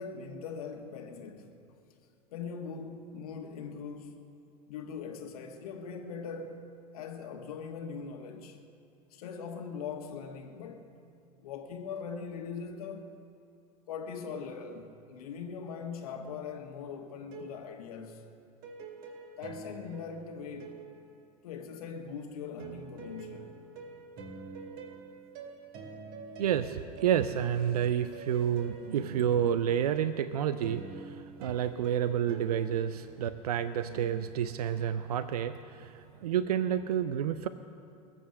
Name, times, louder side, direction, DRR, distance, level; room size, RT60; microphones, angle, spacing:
voice 1, 0.0-1.5 2.3-4.2 4.7-6.6 6.9-8.6 9.1-10.9 11.4-13.0 13.9-18.2 19.4-20.8 21.4-23.6, left 6 dB, 70° left, 1.4 m, -41 dB
sound 1, 17.2-21.9 22.6-33.8, right 4 dB, 50° right, 2.2 m, -47 dB
voice 2, 26.4-37.5, right 9 dB, 75° right, 0.5 m, -30 dB
21.5 x 7.6 x 6.6 m
figure-of-eight pair, 75°, 20 cm